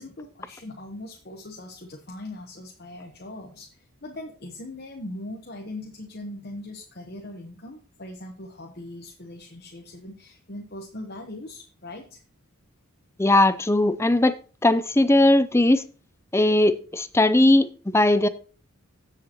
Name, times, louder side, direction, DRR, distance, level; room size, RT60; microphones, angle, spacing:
voice 1, 0.0-12.2, left 1 dB, 45° left, 2 dB, 1.0 m, -40 dB
voice 2, 13.2-14.4 14.6-15.8 16.3-17.7 17.9-18.3, left 1 dB, 10° left, 13 dB, 0.4 m, -18 dB
15.5 x 6.5 x 2.9 m, 0.39 s
head